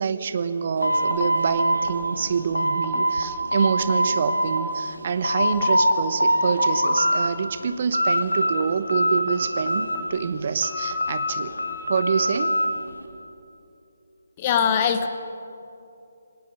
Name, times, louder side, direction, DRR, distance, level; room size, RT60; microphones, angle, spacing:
voice 1, 0.0-11.5 11.9-12.5, right 6 dB, 40° right, 12 dB, 1.0 m, -26 dB
sound 1, 0.8-3.3 3.5-4.6 5.0-5.9 6.2-7.3 7.6-8.6 8.9-10.2 10.6-12.7, equal, 85° left, 2.6 m, -23 dB
voice 2, 14.4-15.1, left 7 dB, 25° left, 8 dB, 1.2 m, -21 dB
27.5 x 18.5 x 5.3 m, 2.7 s
figure-of-eight pair, 145°, 0 cm